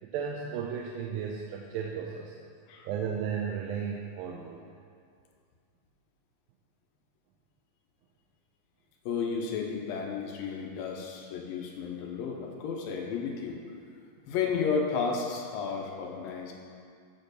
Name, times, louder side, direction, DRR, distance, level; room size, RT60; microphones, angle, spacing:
voice 1, 0.0-2.4 2.9-4.7, right 7 dB, 85° right, 0 dB, 2.3 m, -34 dB
voice 2, 9.1-13.6 14.3-16.5, left 5 dB, 85° left, 1 dB, 2.5 m, -32 dB
8.1 x 4.4 x 6.4 m, 2.2 s
omnidirectional pair, 4.0 m